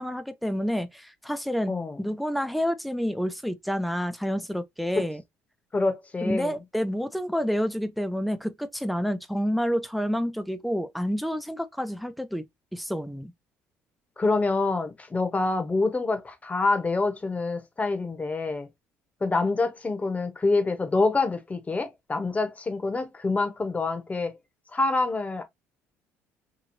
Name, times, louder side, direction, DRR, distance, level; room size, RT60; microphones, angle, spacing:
voice 1, 0.0-1.7 2.0-5.2 6.2-12.4 12.7-13.3, equal, ahead, 0.5 m, -29 dB
voice 2, 1.7-2.0 5.0-5.1 5.7-6.6 14.2-18.7 19.2-24.3 24.7-25.4, left 3 dB, 25° left, 0.9 m, -26 dB
3.0 x 2.7 x 2.6 m
supercardioid pair, 70°, 6 cm